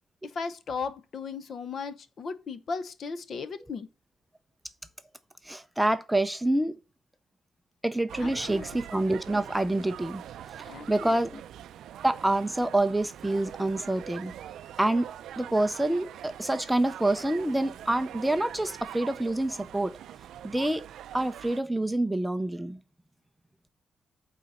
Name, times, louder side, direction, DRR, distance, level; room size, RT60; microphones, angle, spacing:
voice 1, 0.2-3.9 8.2-8.7 10.7-11.2, left 5 dB, 45° left, 0.7 m, -36 dB
voice 2, 5.4-6.8 7.8-10.2 10.6-11.4 12.0-14.3 14.8-20.0 20.4-20.8 21.1-22.8, right 1 dB, 5° right, 0.5 m, -27 dB
sound 1, 8.1-21.6, right 11 dB, 75° right, 0.4 m, -44 dB
9.1 x 4.0 x 5.4 m
cardioid pair, 150°, 0 cm